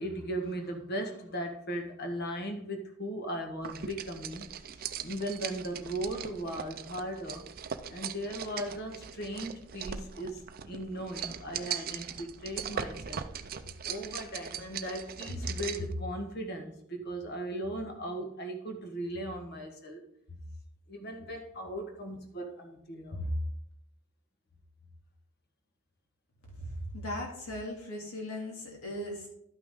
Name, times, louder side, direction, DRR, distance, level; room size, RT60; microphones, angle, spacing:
voice 1, 0.0-4.5 5.0-7.5 7.9-13.3 13.8-20.0 20.9-23.4, right 1 dB, 50° left, 4 dB, 1.4 m, -37 dB
sound 1, 3.6-15.9, right 8 dB, 45° right, 0.5 m, -40 dB
voice 2, 26.6-29.3, left 1 dB, 80° left, -1 dB, 2.5 m, -38 dB
12.0 x 6.0 x 3.7 m, 0.77 s
head